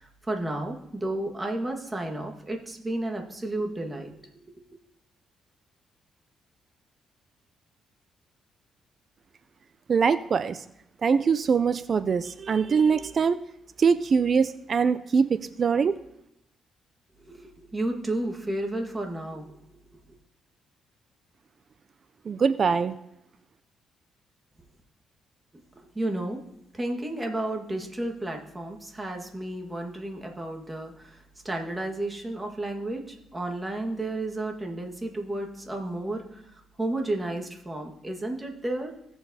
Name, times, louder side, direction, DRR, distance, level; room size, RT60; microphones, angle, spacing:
voice 1, 0.0-4.3 4.5-4.6 17.2-19.8 25.9-26.4 26.7-38.9, right 1 dB, 20° right, 2 dB, 1.6 m, -32 dB
voice 2, 9.9-10.6 11.0-13.4 13.8-16.0 22.3-22.9, right 5 dB, 45° right, 12 dB, 0.3 m, -23 dB
16.5 x 7.1 x 2.8 m, 0.83 s
cardioid pair, 90°, 0 cm